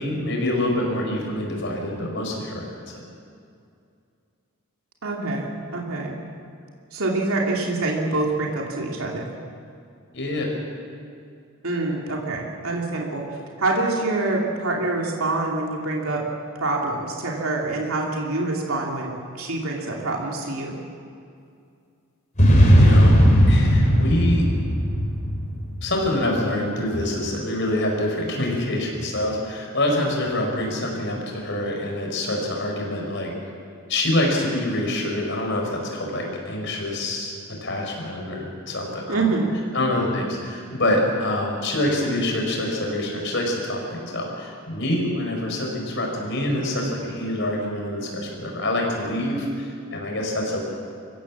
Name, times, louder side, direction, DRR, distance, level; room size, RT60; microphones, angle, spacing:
voice 1, 0.0-2.6 10.1-10.5 22.8-23.1 23.5-24.5 25.8-33.3 33.9-39.3 39.7-50.6, left 1 dB, 55° left, 1 dB, 5.3 m, -26 dB
voice 2, 5.0-6.2 6.9-9.3 11.6-13.2 13.6-16.2 16.6-20.8 39.1-39.6, right 2 dB, 75° right, -2 dB, 2.9 m, -26 dB
sound 1, 22.4-25.9, equal, 35° left, 3.9 m, -16 dB
25.5 x 16.0 x 7.4 m, 2.4 s
head